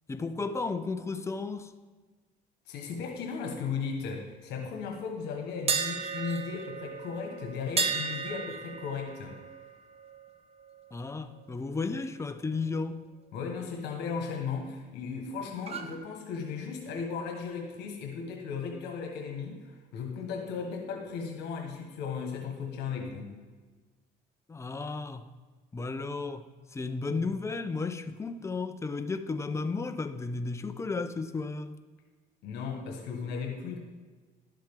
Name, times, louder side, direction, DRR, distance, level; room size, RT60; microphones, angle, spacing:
voice 1, 0.1-1.7 10.9-13.0 24.5-25.3 25.7-31.8, left 4 dB, 15° left, 0.5 m, -34 dB
voice 2, 2.7-9.4 13.3-23.3 32.4-33.8, left 5 dB, 85° left, 1.4 m, -36 dB
sound 1, 5.7-11.6 11.9-12.1 15.6-15.9, right 5 dB, 35° right, 0.9 m, -35 dB
12.0 x 7.6 x 3.6 m
cardioid pair, 110°, 17 cm